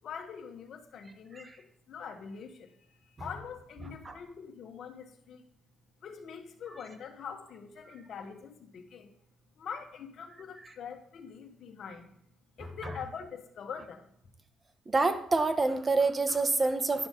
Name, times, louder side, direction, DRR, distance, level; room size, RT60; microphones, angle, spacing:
voice 1, 0.0-5.5 6.0-9.1 9.6-12.1 12.6-14.1, left 6 dB, 65° left, 4 dB, 1.2 m, -44 dB
voice 2, 14.9-17.1, right 3 dB, 30° right, 9 dB, 0.9 m, -26 dB
10.5 x 5.9 x 3.8 m, 0.65 s
cardioid pair, 90°, 0 cm